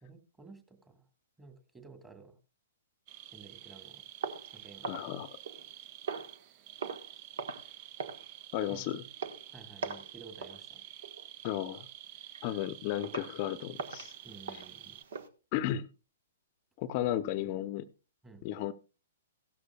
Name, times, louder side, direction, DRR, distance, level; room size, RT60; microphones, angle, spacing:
voice 1, 0.0-1.0 1.4-2.4 3.3-4.0 4.5-4.9 8.7-8.8 9.5-10.8 14.2-15.0 18.2-18.4, right 4 dB, 10° right, 7 dB, 2.1 m, -53 dB
sound 1, 3.1-15.0, right 12 dB, 40° right, 0.6 m, -50 dB
sound 2, 4.2-5.7 6.1-6.4 6.8-7.1 7.4-7.7 8.0-8.2 8.6-8.8 9.2-9.4 9.8-10.1 10.4-10.6 11.0-11.3 11.7-11.8 12.3-12.4 13.0-13.4 13.8-15.3, right 5 dB, 65° right, 1.3 m, -41 dB
voice 2, 4.8-5.3 8.5-9.0 11.4-11.9 12.4-14.1 14.5-14.6 15.5-15.9 16.8-17.9 18.4-18.7, left 12 dB, 40° left, 13 dB, 0.7 m, -34 dB
16.5 x 13.0 x 2.3 m, 0.32 s
hypercardioid pair, 120°, 0 cm